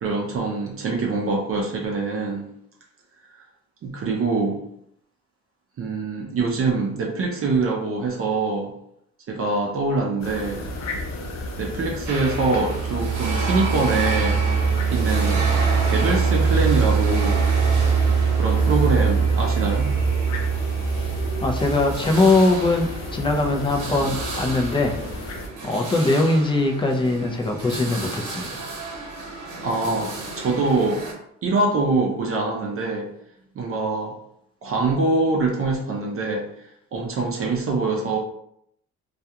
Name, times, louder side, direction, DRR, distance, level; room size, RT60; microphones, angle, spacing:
voice 1, 0.0-2.5 3.8-4.6 5.8-8.7 9.3-10.6 11.6-14.4 14.9-15.5 15.8-17.4 18.4-19.9 29.6-31.0 31.4-33.1 33.5-34.1 34.6-38.2, right 3 dB, 50° right, -1 dB, 0.5 m, -24 dB
sound 1, 10.2-25.5, left 1 dB, 65° left, 0.6 m, -33 dB
sound 2, 11.9-22.0, right 6 dB, 30° right, 0.9 m, -22 dB
sound 3, 12.1-31.1, right 2 dB, 80° right, 0.8 m, -33 dB
voice 2, 21.4-24.9 25.6-28.5, left 2 dB, 15° left, 2 dB, 0.4 m, -21 dB
2.4 x 2.2 x 2.7 m, 0.74 s
cardioid pair, 90°, 30 cm